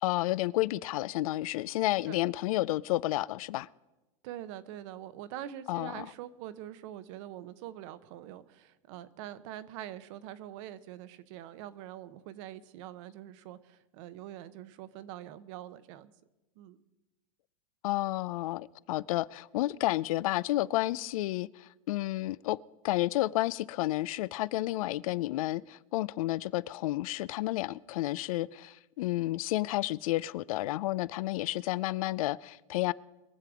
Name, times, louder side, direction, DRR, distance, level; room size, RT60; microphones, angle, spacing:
voice 1, 0.0-3.7 5.7-6.1 17.8-22.6 22.8-32.9, left 17 dB, 75° left, 0.4 m, -31 dB
voice 2, 4.2-16.1 16.6-16.8, right 12 dB, 60° right, 0.9 m, -44 dB
22.5 x 7.6 x 4.9 m
supercardioid pair, 135°, 18 cm